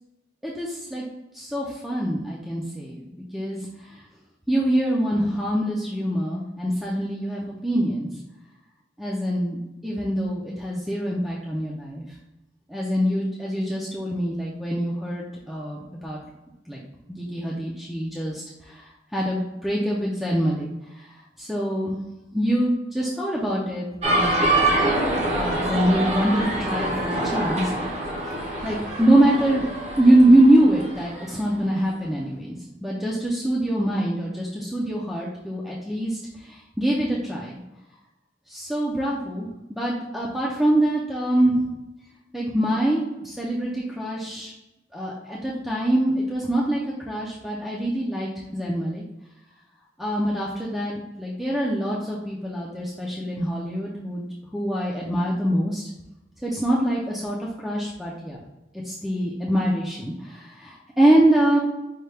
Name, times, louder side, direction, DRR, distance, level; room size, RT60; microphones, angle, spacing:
voice 1, 0.4-1.0 1.3-3.6 3.9-4.0 4.5-8.1 9.0-9.6 9.8-12.0 12.7-16.2 16.7-16.8 17.1-20.7 20.9-21.1 21.4-21.9 22.3-24.4 25.3-28.0 28.6-29.7 30.0-37.6 38.5-41.7 42.3-44.5 44.9-49.0 50.0-54.2 54.5-55.8 56.4-58.4 58.8-61.6, right 1 dB, ahead, -5 dB, 0.5 m, -24 dB
sound 1, 24.0-31.7, right 1 dB, 35° right, 0.8 m, -25 dB
5.6 x 2.3 x 3.3 m, 0.97 s
head